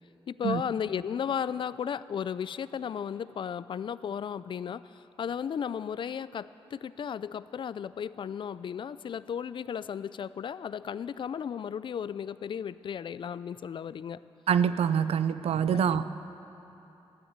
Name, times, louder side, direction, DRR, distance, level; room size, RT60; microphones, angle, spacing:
voice 1, 0.3-14.2 15.7-16.1, left 8 dB, 55° left, 16 dB, 0.4 m, -35 dB
voice 2, 14.5-16.1, right 8 dB, 85° right, 14 dB, 0.5 m, -25 dB
14.5 x 10.0 x 8.0 m, 3.0 s
wide cardioid pair, 100°, 10 cm